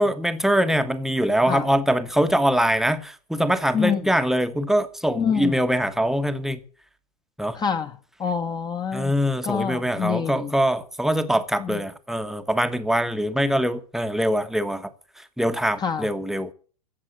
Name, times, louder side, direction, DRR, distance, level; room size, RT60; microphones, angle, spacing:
voice 1, 0.0-6.6 7.4-7.6 8.9-14.9 15.4-16.5, equal, ahead, 1.2 m, -23 dB
voice 2, 3.7-4.1 5.2-5.6 7.5-9.1 9.4-10.5 11.6-11.8 15.8-16.1, left 7 dB, 20° left, 1.4 m, -26 dB
15.0 x 7.4 x 7.9 m
figure-of-eight pair, 95°, 20 cm